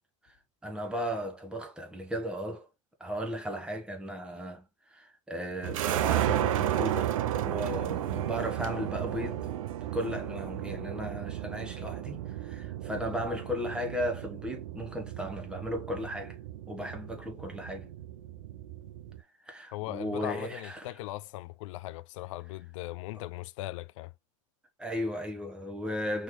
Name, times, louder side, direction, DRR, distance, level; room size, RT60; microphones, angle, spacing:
voice 1, 0.6-2.7 3.0-7.1 7.4-9.5 9.9-16.4 16.7-17.9 19.5-20.9 23.1-23.2 24.8-26.2, equal, 5° right, 1.4 m, -36 dB
sound 1, 5.6-19.2, right 11 dB, 75° right, 0.7 m, -33 dB
voice 2, 19.7-24.1, left 18 dB, 65° left, 0.5 m, -39 dB
5.7 x 3.4 x 2.2 m
hypercardioid pair, 115°, 17 cm